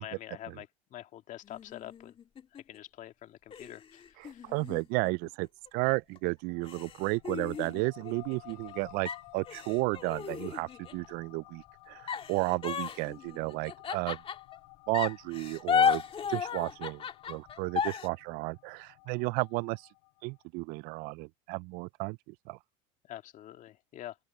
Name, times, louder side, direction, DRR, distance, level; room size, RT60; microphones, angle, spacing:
voice 1, 0.0-2.2 2.5-4.5 23.1-24.2, left 12 dB, 50° left, 2.1 m, -46 dB
sound 1, 1.4-2.8 3.5-5.7 6.2-6.3 6.6-8.7 9.1-11.1 12.1-14.6 14.9-18.1, left 7 dB, 35° left, 2.2 m, -34 dB
voice 2, 4.2-14.2 14.9-16.0 16.3-19.9 20.2-22.2 22.5-22.6, right 26 dB, 65° right, 0.5 m, -33 dB
sound 2, 6.5-20.4, left 39 dB, 75° left, 5.0 m, -55 dB
open air
supercardioid pair, 95°, 17 cm